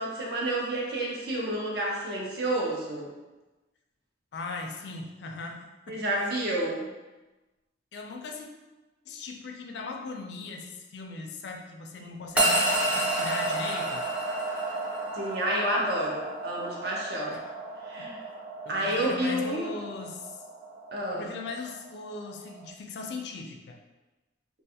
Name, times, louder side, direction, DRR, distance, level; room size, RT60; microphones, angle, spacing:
voice 1, 0.0-3.1 5.9-6.9 15.1-17.4 17.9-18.2 18.7-19.7 20.9-21.3, right 1 dB, 55° right, -3 dB, 0.6 m, -30 dB
voice 2, 4.3-6.3 7.9-8.5 9.1-14.6 17.3-17.5 18.6-20.4 21.1-23.8, left 3 dB, 65° left, 2 dB, 0.3 m, -39 dB
sound 1, 12.4-22.7, right 1 dB, 5° right, 0.4 m, -31 dB
2.4 x 2.3 x 2.8 m, 1.1 s
head